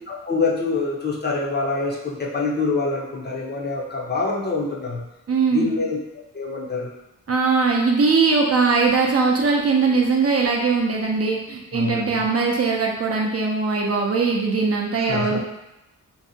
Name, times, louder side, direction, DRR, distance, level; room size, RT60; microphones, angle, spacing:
voice 1, 0.1-5.1 5.5-6.0 6.3-6.9 11.7-12.2 15.0-15.4, left 3 dB, 30° left, -3 dB, 0.5 m, -25 dB
voice 2, 5.3-5.8 7.3-15.4, right 4 dB, 45° right, -1 dB, 0.4 m, -20 dB
2.6 x 2.1 x 2.6 m, 0.93 s
wide cardioid pair, 90°, 33 cm